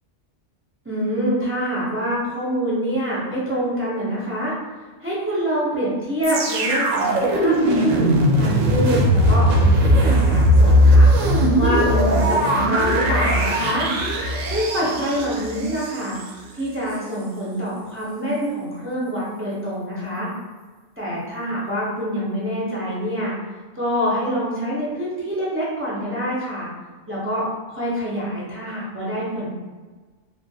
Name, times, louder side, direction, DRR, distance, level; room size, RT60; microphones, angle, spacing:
voice 1, 0.8-4.5 5.0-11.1 11.6-13.9 14.5-16.2 16.5-20.3 21.0-23.3 23.7-26.7 27.1-29.5, equal, 20° right, -7 dB, 0.4 m, -25 dB
sound 1, 6.2-16.3 16.9-17.0, equal, 85° right, 0.9 m, -18 dB
3.0 x 2.4 x 2.7 m, 1.3 s
omnidirectional pair, 1.3 m